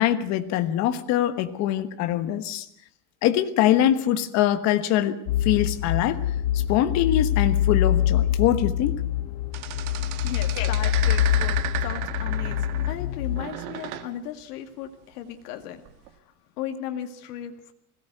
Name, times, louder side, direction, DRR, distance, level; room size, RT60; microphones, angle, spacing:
voice 1, 0.0-2.7 3.2-6.2 6.5-9.0 10.6-10.7, left 11 dB, 35° left, 10 dB, 1.4 m, -23 dB
sound 1, 5.3-13.5, left 11 dB, 60° left, 1.9 m, -25 dB
sound 2, 9.5-13.0 13.3-14.1 15.8-16.1, right 12 dB, 70° right, 2.1 m, -34 dB
voice 2, 10.2-15.8 16.6-17.7, left 10 dB, 85° left, 5 dB, 2.1 m, -36 dB
21.0 x 17.0 x 8.0 m, 0.69 s
cardioid pair, 180°, 45 cm